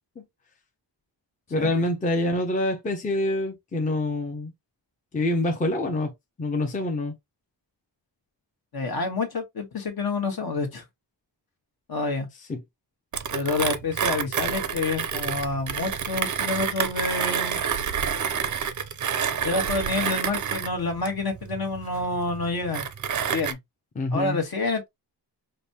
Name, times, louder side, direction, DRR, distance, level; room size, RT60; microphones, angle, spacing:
voice 1, 1.5-4.5 5.1-6.1 6.4-7.1 12.5-12.6 24.0-24.4, left 1 dB, 20° left, 0.5 m, -26 dB
voice 2, 8.7-10.8 11.9-12.3 13.3-17.6 19.4-22.9 23.3-23.6 24.1-24.9, left 3 dB, 55° left, 1.2 m, -28 dB
Mechanisms, 13.1-23.5, right 7 dB, 45° right, 0.5 m, -29 dB
5.0 x 2.2 x 2.7 m
wide cardioid pair, 170°, 44 cm